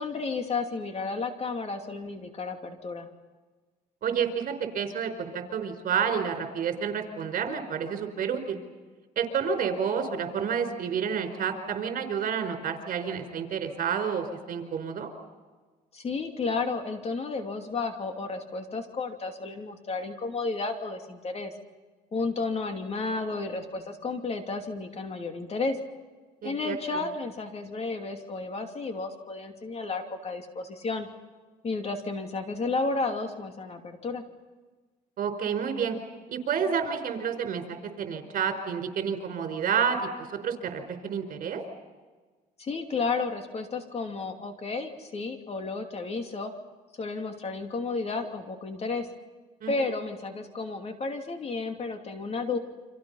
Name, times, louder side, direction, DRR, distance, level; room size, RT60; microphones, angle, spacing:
voice 1, 0.0-3.1 15.9-21.5 22.1-25.8 26.4-31.1 31.6-34.2 42.6-46.5 47.0-49.1 49.7-52.6, left 3 dB, 40° left, 5 dB, 2.8 m, -32 dB
voice 2, 4.0-8.6 9.2-15.1 26.4-27.0 35.2-36.0 36.3-40.1 40.4-41.6 49.6-49.8, right 7 dB, 55° right, 6 dB, 4.8 m, -29 dB
30.0 x 26.0 x 5.7 m, 1.3 s
cardioid pair, 110°, 17 cm